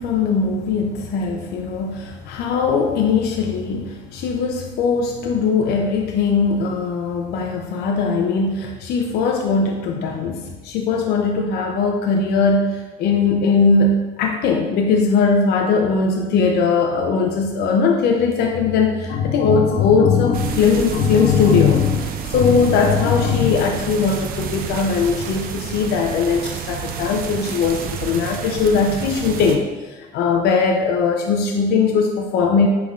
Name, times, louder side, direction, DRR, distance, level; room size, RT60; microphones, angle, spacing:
voice 1, 0.0-32.7, left 5 dB, 70° left, 1 dB, 0.5 m, -19 dB
sound 1, 20.3-29.6, right 7 dB, 60° right, 0.4 m, -30 dB
5.4 x 3.3 x 2.4 m, 1.2 s
cardioid pair, 110°, 17 cm